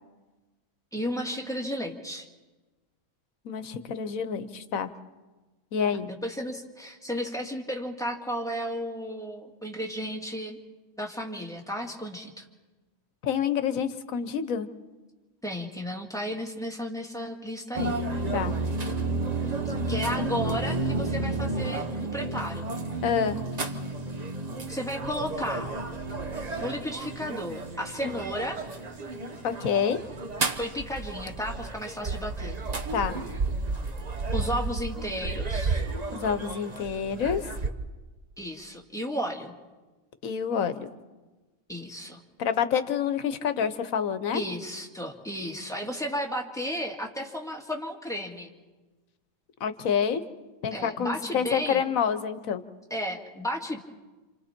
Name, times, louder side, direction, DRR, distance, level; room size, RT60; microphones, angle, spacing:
voice 1, 0.9-2.3 6.1-10.6 11.0-12.5 15.4-18.0 19.9-22.7 24.7-25.7 26.6-28.6 30.6-32.6 34.3-35.8 38.4-39.5 41.7-42.2 44.3-48.5 50.7-51.8 52.9-53.8, equal, ahead, 0 dB, 1.9 m, -33 dB
voice 2, 3.4-4.9 5.7-6.1 13.2-14.7 18.3-18.5 23.0-23.4 29.4-30.0 32.9-33.2 36.1-37.4 40.2-40.9 42.4-44.4 49.6-50.2 50.6-52.6, left 7 dB, 75° left, 11 dB, 1.4 m, -27 dB
sound 1, 17.7-37.7, right 3 dB, 30° right, 1.0 m, -32 dB
28.0 x 27.5 x 4.4 m, 1.2 s
omnidirectional pair, 1.4 m